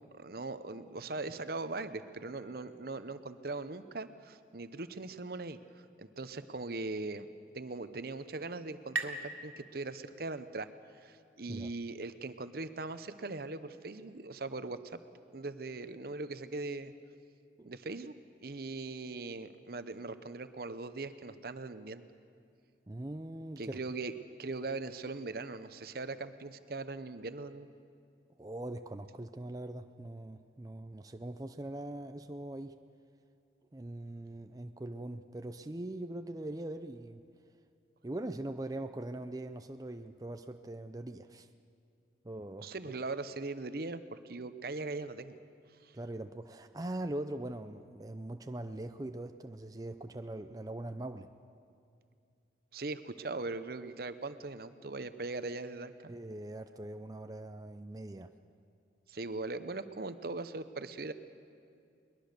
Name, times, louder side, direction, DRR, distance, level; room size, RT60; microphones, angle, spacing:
voice 1, 0.1-5.6 6.0-7.3 7.5-10.7 10.9-15.0 15.3-16.9 17.6-18.1 18.4-22.1 23.6-24.1 24.4-27.7 42.6-45.4 45.8-46.0 52.7-56.1 59.1-61.1, right 3 dB, 55° right, 12 dB, 0.8 m, -40 dB
sound 1, 7.5-10.9, right 3 dB, 85° right, 1.9 m, -43 dB
voice 2, 22.9-23.8 28.4-32.8 33.7-37.2 38.0-41.5 42.2-42.7 45.9-51.3 56.1-58.3, right 1 dB, 20° right, 8 dB, 0.5 m, -41 dB
22.0 x 21.0 x 6.7 m, 2.4 s
head